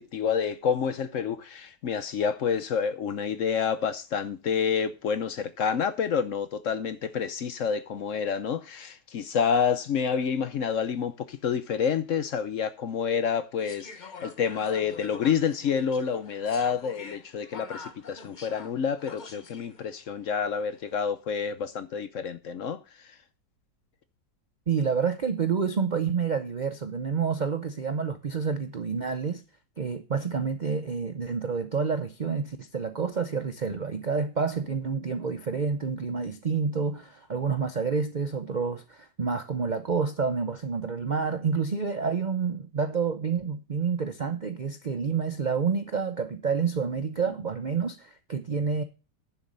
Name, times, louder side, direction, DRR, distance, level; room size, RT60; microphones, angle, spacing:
voice 1, 0.0-23.1, left 7 dB, 60° left, 0.9 m, -28 dB
sound 1, 13.6-19.8 20.7-21.0, left 4 dB, 35° left, 0.9 m, -45 dB
voice 2, 24.7-29.4 29.8-48.8, right 5 dB, 50° right, 0.5 m, -28 dB
10.5 x 7.3 x 5.3 m
omnidirectional pair, 1.8 m